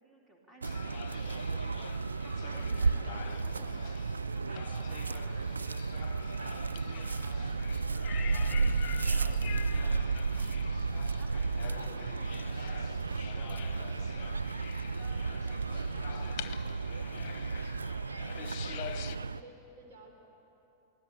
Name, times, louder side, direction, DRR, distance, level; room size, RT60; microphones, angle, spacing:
voice 1, 0.0-1.6 2.2-4.0 4.3-10.6 10.9-14.4 15.0-17.3 18.3-19.3, right 2 dB, 15° right, -2 dB, 3.5 m, -57 dB
sound 1, 0.6-19.2, left 10 dB, 45° left, 0.8 m, -46 dB
sound 2, 0.6-19.4, right 4 dB, 75° right, 0.4 m, -33 dB
voice 2, 4.9-5.2 18.1-20.1, right 2 dB, 50° right, 1 dB, 3.7 m, -57 dB
23.5 x 16.5 x 8.5 m, 3.0 s
figure-of-eight pair, 90°, 0 cm